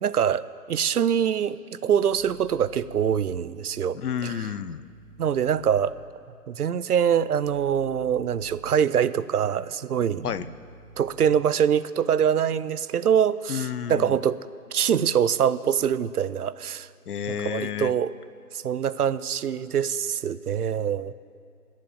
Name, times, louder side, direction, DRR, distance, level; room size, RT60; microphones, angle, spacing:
voice 1, 0.0-4.5 5.2-6.0 6.5-10.3 11.0-14.4 14.7-16.9 17.4-18.1 18.5-21.1, right 8 dB, 70° right, 16 dB, 0.6 m, -24 dB
sound 1, 2.0-3.4 4.7-6.0 7.4-8.7 10.0-11.4, equal, 45° left, 3.3 m, -49 dB
voice 2, 4.0-4.8 10.2-10.5 13.5-14.2 17.1-17.9, left 8 dB, 70° left, 15 dB, 0.7 m, -30 dB
14.0 x 7.4 x 8.8 m, 2.3 s
figure-of-eight pair, 150°, 47 cm